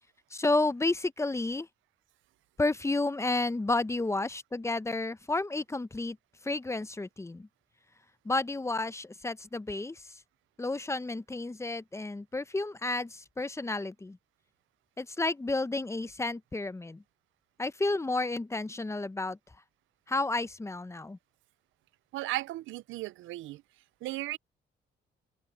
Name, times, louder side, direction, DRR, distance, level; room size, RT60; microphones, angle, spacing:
voice 1, 0.3-1.7 2.6-6.2 6.4-7.5 8.2-10.1 10.6-14.2 15.0-17.0 17.6-19.4 20.1-21.2, left 2 dB, 15° left, 0.7 m, -31 dB
voice 2, 22.1-23.6 24.0-24.4, right 17 dB, 80° right, 0.4 m, -35 dB
cardioid pair, 90°, 20 cm